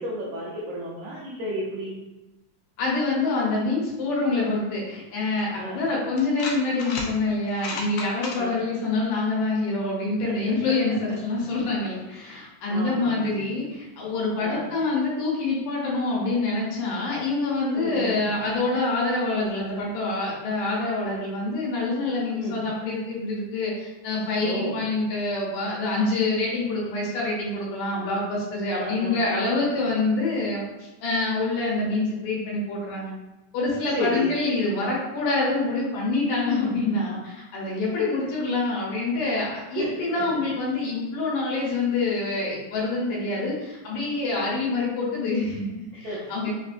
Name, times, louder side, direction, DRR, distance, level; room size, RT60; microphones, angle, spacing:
voice 1, 0.0-1.9 5.6-5.8 8.4-8.6 10.2-11.0 12.7-13.3 14.4-14.7 17.7-18.2 22.3-22.6 24.4-24.8 28.7-29.5 33.9-34.3 39.7-40.4 45.9-46.5, equal, 80° right, -7 dB, 1.6 m, -32 dB
voice 2, 2.8-33.1 33.5-46.5, left 3 dB, 70° left, -4 dB, 2.4 m, -26 dB
sound 1, 5.4-5.5 6.2-7.1 7.5-8.4, left 3 dB, 90° left, 2.4 m, -33 dB
5.6 x 2.6 x 2.5 m, 1.0 s
omnidirectional pair, 4.0 m